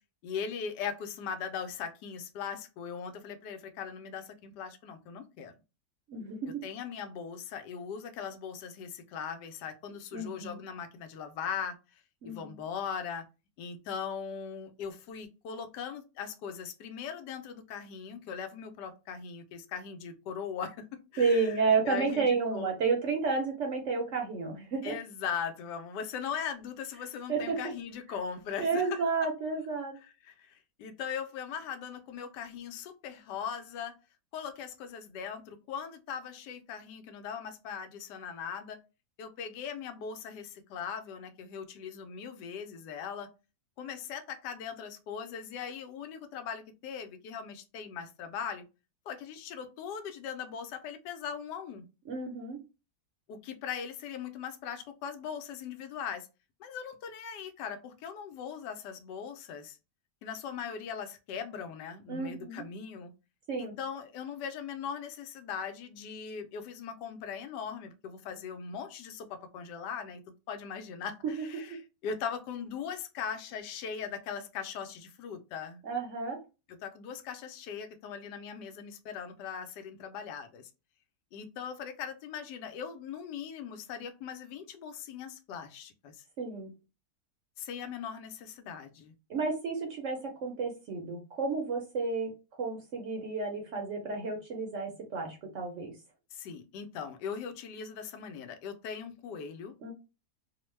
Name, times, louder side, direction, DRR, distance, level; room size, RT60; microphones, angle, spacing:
voice 1, 0.2-5.5 6.6-13.2 13.6-21.6 21.8-22.7 24.8-29.2 30.2-33.9 34.3-38.8 39.2-43.3 43.8-48.6 49.1-51.8 53.3-56.3 56.6-59.8 60.2-63.1 63.6-70.2 70.5-75.9 76.8-80.7 81.3-86.2 87.6-89.1 96.3-99.7, left 7 dB, 90° left, 1.2 m, -40 dB
voice 2, 6.1-6.6 10.1-10.6 12.2-12.6 21.2-25.0 27.3-27.6 28.6-29.9 52.1-52.6 62.1-62.6 63.5-63.7 71.2-71.4 71.7-71.8 75.8-76.4 86.4-86.7 89.3-92.3 92.6-95.9 99.8-99.9, right 4 dB, 65° right, 0.8 m, -31 dB
2.9 x 2.1 x 3.1 m
omnidirectional pair, 1.8 m